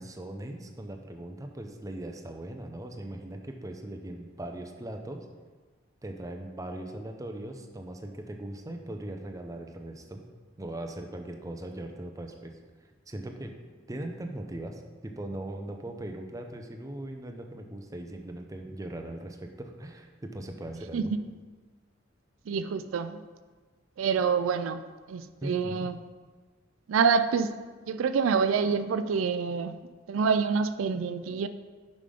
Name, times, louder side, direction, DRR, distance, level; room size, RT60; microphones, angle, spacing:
voice 1, 0.0-5.3 6.0-10.3 10.6-12.6 13.1-13.5 13.9-21.1 25.4-25.9, right 1 dB, 15° right, 4 dB, 0.6 m, -39 dB
voice 2, 22.5-23.2 24.0-24.8 25.1-26.0 26.9-27.5 27.9-29.8 30.1-31.5, right 5 dB, 85° right, 12 dB, 0.4 m, -26 dB
5.7 x 5.0 x 5.0 m, 1.4 s
head